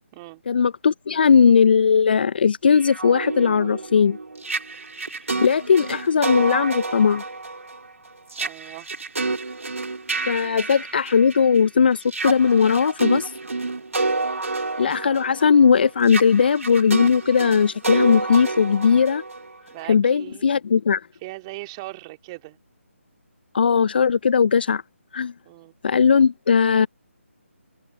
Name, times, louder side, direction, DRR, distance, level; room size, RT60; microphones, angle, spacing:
voice 1, 0.5-4.2 5.4-7.2 10.3-13.3 14.8-19.2 19.9-21.0 23.5-24.8 25.1-25.3 25.8-26.9, left 6 dB, 45° left, 0.7 m, -18 dB
sound 1, 2.7-11.6 12.0-19.8, right 3 dB, 75° right, 2.5 m, -29 dB
voice 2, 8.4-8.9 19.7-20.5 21.2-22.6 25.4-25.7, right 22 dB, 20° right, 3.1 m, -39 dB
open air
figure-of-eight pair, 155°, 7 cm